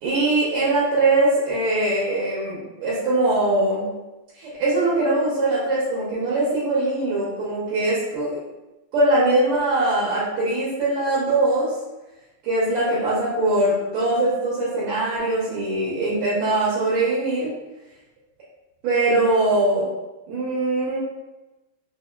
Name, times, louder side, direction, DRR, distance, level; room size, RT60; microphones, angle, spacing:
voice 1, 0.0-3.9 4.4-8.3 8.9-11.7 12.4-17.5 18.8-19.9 20.3-21.0, right 2 dB, 80° right, -9 dB, 1.8 m, -21 dB
4.7 x 2.5 x 2.2 m, 1.0 s
omnidirectional pair, 2.4 m